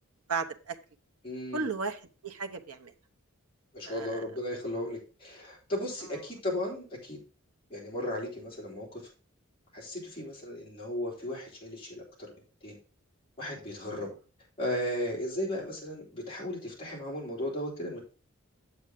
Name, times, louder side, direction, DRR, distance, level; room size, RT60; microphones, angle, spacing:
voice 1, 0.3-0.7 1.5-2.9 3.9-4.2 13.9-14.1, right 4 dB, 90° right, 5 dB, 0.9 m, -35 dB
voice 2, 1.2-1.6 3.7-7.2 7.7-9.0 9.7-12.3 12.6-12.8 13.4-14.1 14.6-18.0, left 1 dB, 25° left, -4 dB, 3.4 m, -35 dB
8.0 x 7.6 x 3.7 m, 0.36 s
head